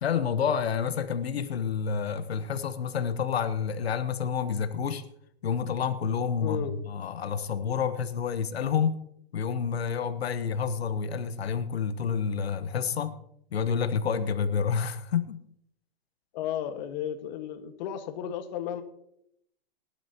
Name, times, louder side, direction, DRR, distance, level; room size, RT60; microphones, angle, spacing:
voice 1, 0.0-5.0 5.4-9.0 9.3-13.2 13.5-15.4, left 7 dB, 90° left, 1.3 m, -29 dB
voice 2, 6.4-6.7 16.3-18.8, left 10 dB, 45° left, 1.7 m, -33 dB
20.5 x 11.5 x 3.0 m
hypercardioid pair, 140°, 30 cm